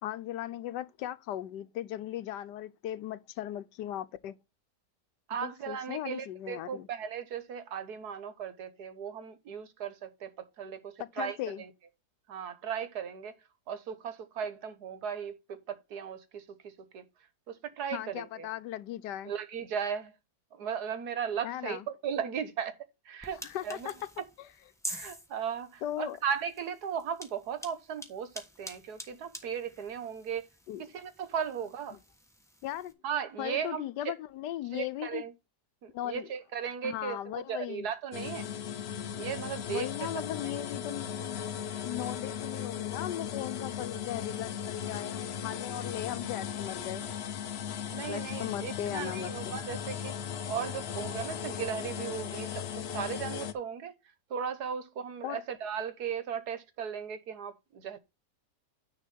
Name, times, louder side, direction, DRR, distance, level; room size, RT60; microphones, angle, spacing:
voice 1, 0.0-4.4 5.7-6.9 11.0-11.6 17.9-19.3 21.4-21.8 23.4-23.9 25.8-26.2 30.7-30.8 32.6-32.9 33.4-35.2 35.9-36.3 36.8-37.9 39.7-41.4 41.8-47.0 48.1-49.6 55.2-55.4, left 12 dB, 80° left, 1.3 m, -37 dB
voice 2, 5.3-11.7 12.3-13.3 13.7-17.0 17.5-18.5 19.2-20.1 20.5-22.8 23.0-23.9 24.9-30.5 30.8-32.0 33.0-34.1 34.7-35.3 35.8-38.5 39.1-40.5 47.9-50.2 50.5-53.9 54.3-58.0, right 7 dB, 70° right, 1.5 m, -37 dB
sound 1, 23.2-32.9, equal, ahead, 1.1 m, -47 dB
sound 2, 38.1-53.5, left 8 dB, 55° left, 0.7 m, -37 dB
9.9 x 3.5 x 6.8 m
omnidirectional pair, 1.8 m